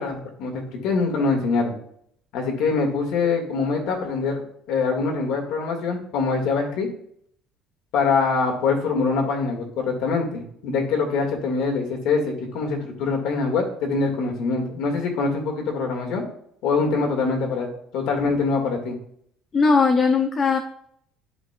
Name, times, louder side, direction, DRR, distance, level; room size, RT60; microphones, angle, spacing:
voice 1, 0.0-1.7 2.3-4.4 4.7-6.9 7.9-16.2 16.6-18.9, left 4 dB, 60° left, 2 dB, 1.7 m, -24 dB
voice 2, 19.5-20.6, left 4 dB, 25° left, 5 dB, 0.4 m, -18 dB
11.5 x 5.1 x 2.2 m, 0.68 s
cardioid pair, 175°, 0 cm